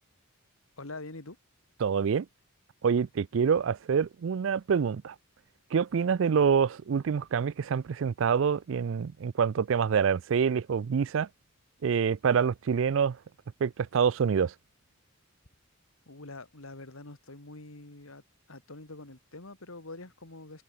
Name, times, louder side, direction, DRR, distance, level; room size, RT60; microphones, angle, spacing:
voice 1, 0.8-1.4 16.1-18.2 18.5-20.6, left 2 dB, 85° left, 2.7 m, -45 dB
voice 2, 1.8-2.3 2.8-5.1 5.7-11.3 11.8-13.2 13.6-14.5, right 6 dB, 65° right, 0.4 m, -26 dB
head